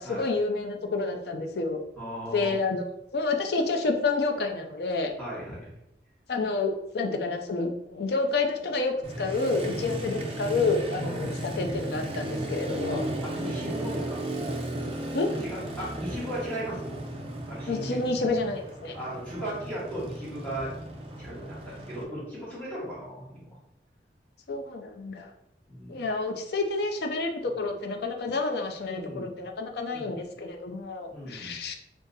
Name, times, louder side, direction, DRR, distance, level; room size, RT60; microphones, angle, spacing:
voice 1, 0.0-1.8 2.3-5.1 6.3-13.1 15.1-15.3 17.7-18.9 24.5-25.3 25.9-31.7, left 3 dB, 60° left, 4 dB, 0.5 m, -29 dB
voice 2, 2.0-2.6 5.2-5.7 9.8-10.0 11.0-11.3 12.8-14.3 15.4-17.0 17.5-18.0 18.9-20.7 21.2-23.6 25.7-26.0 28.8-29.3 29.9-30.2 31.1-31.6, equal, 10° left, -8 dB, 1.4 m, -37 dB
Motorcycle, 9.0-22.0, right 1 dB, 35° right, 0.5 m, -35 dB
2.7 x 2.4 x 3.9 m, 0.81 s
head